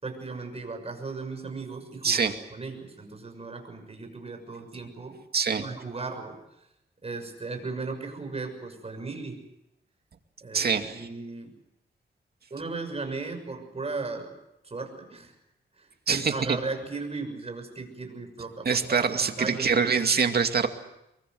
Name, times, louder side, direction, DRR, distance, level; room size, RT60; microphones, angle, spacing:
voice 1, 0.0-5.2 5.6-6.4 7.0-9.4 10.4-11.6 12.5-14.3 14.6-15.3 15.7-19.8, right 3 dB, 35° right, 5 dB, 6.6 m, -36 dB
voice 2, 2.0-2.3 5.3-5.6 10.5-11.1 16.1-16.6 18.6-20.7, right 5 dB, 55° right, 6 dB, 2.3 m, -24 dB
24.0 x 23.0 x 7.8 m, 0.86 s
wide cardioid pair, 95°, 19 cm